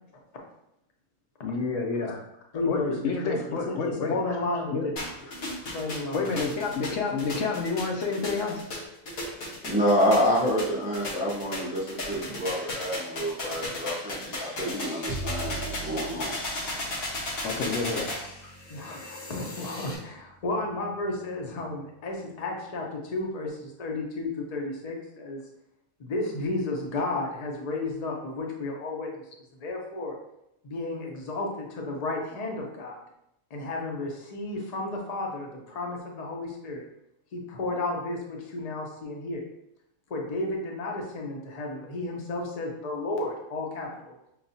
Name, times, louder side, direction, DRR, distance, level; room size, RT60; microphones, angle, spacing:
voice 1, 1.4-2.2 2.5-4.2 4.7-4.9 6.1-8.6 17.4-18.1, left 4 dB, 70° left, 1 dB, 1.0 m, -29 dB
voice 2, 2.5-3.4 3.7-5.0 5.3-5.4 5.7-6.3 15.5-15.7 16.6-16.8 18.7-25.4 26.0-29.2 29.6-30.2 30.6-33.0 33.5-36.8 37.3-39.4 40.1-44.1, left 2 dB, 40° left, 0 dB, 0.6 m, -33 dB
sound 1, 5.0-20.0, left 1 dB, 90° left, 1.6 m, -35 dB
voice 3, 9.6-16.3, equal, 10° right, -4 dB, 0.4 m, -27 dB
Bowed string instrument, 15.1-21.5, right 3 dB, 60° right, 0.9 m, -42 dB
5.8 x 2.3 x 2.7 m, 0.82 s
omnidirectional pair, 1.4 m